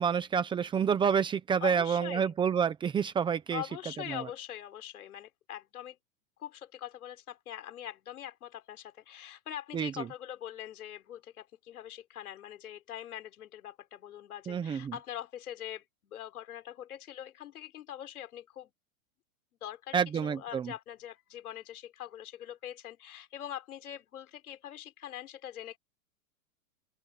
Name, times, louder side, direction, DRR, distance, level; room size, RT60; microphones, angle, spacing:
voice 1, 0.0-3.6 4.1-4.3 9.7-10.1 14.5-15.0 19.9-20.7, right 7 dB, 10° right, 0.8 m, -28 dB
voice 2, 1.6-2.3 3.5-6.0 6.4-18.7 19.6-25.8, left 11 dB, 85° left, 4.6 m, -43 dB
open air
supercardioid pair, 160°, 43 cm